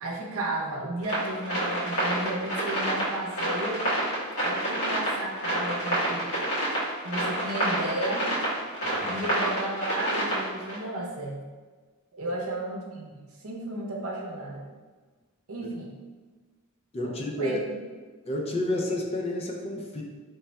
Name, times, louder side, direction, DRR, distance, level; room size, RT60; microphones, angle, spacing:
voice 1, 0.0-3.9 4.4-6.3 7.0-8.3 9.1-11.4 12.1-13.1 13.4-14.6 15.5-15.9 17.0-17.6, right 1 dB, 70° right, -1 dB, 0.7 m, -33 dB
sound 1, 1.0-10.8, right 1 dB, 85° left, 1.3 m, -28 dB
voice 2, 16.9-17.6 18.3-20.0, left 1 dB, 25° left, 0 dB, 0.4 m, -30 dB
3.3 x 2.2 x 4.1 m, 1.4 s
head